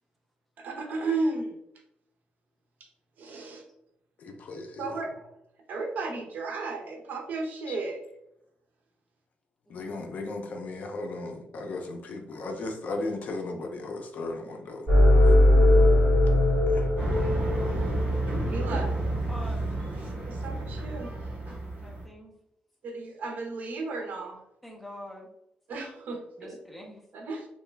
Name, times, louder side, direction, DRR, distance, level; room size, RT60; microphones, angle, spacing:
voice 1, 0.6-1.5 3.2-3.6 4.8-5.3 5.7-8.0 18.4-18.9 20.2-21.1 22.8-24.4 25.7-26.6 27.1-27.5, right 3 dB, 60° right, 2 dB, 0.6 m, -34 dB
voice 2, 4.2-5.0 7.7-7.8 9.7-14.9 15.3-15.4 16.7-16.9, left 2 dB, 55° left, 4 dB, 0.5 m, -36 dB
sound 1, 14.9-18.9, left 1 dB, 15° right, 1.2 m, -20 dB
sound 2, 17.0-22.0, right 2 dB, 40° right, 1.1 m, -31 dB
voice 3, 19.3-19.6 21.7-22.3 24.6-25.3 26.4-27.0, left 1 dB, ahead, -1 dB, 0.6 m, -44 dB
2.9 x 2.2 x 3.2 m, 0.80 s
wide cardioid pair, 165°, 3 cm